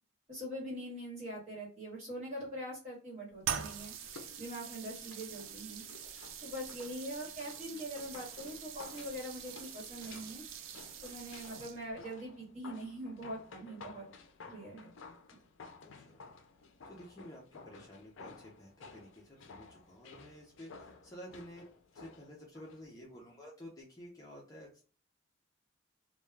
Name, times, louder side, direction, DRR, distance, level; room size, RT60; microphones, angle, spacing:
voice 1, 0.3-3.9 4.4-5.8 6.4-10.4 11.0-14.0 14.4-14.9, equal, 35° right, -4 dB, 1.3 m, -43 dB
sound 1, 3.4-12.0, right 8 dB, 80° right, 0.4 m, -44 dB
sound 2, 4.0-22.8 23.1-23.2, left 4 dB, 75° left, 0.4 m, -54 dB
voice 2, 15.8-16.3 16.8-21.6 21.9-24.8, equal, 15° left, -3 dB, 0.5 m, -52 dB
2.2 x 2.2 x 3.1 m, 0.39 s
head